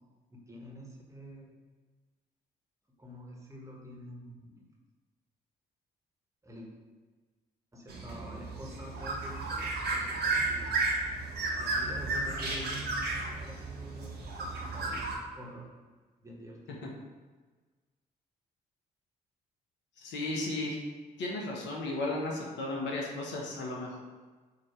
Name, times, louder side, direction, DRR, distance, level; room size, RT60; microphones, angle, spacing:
voice 1, 0.3-1.6 3.0-4.6 6.4-6.7 7.7-10.7 11.6-15.7 16.2-16.8, equal, 15° right, -2 dB, 1.6 m, -47 dB
sound 1, 7.9-15.1, right 3 dB, 50° right, 1.5 m, -33 dB
voice 2, 20.0-20.8 21.2-24.0, left 2 dB, 60° left, -2 dB, 1.2 m, -34 dB
7.3 x 3.0 x 4.7 m, 1.3 s
figure-of-eight pair, 40°, 21 cm